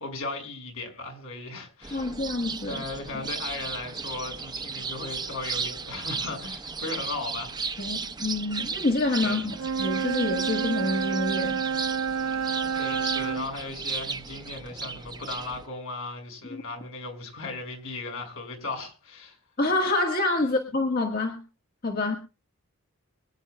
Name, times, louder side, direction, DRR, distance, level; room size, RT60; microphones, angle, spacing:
voice 1, 0.0-2.2 2.7-7.9 9.2-9.4 12.8-19.4, left 3 dB, 70° left, 5.4 m, -37 dB
sound 1, 1.8-15.6, right 5 dB, 20° right, 0.7 m, -35 dB
voice 2, 1.9-2.8 7.8-11.6 16.5-16.6 19.6-21.4 21.8-22.2, left 2 dB, 45° left, 1.6 m, -27 dB
Wind instrument woodwind instrument, 9.5-13.5, right 6 dB, 70° right, 0.5 m, -29 dB
25.0 x 10.0 x 2.2 m
head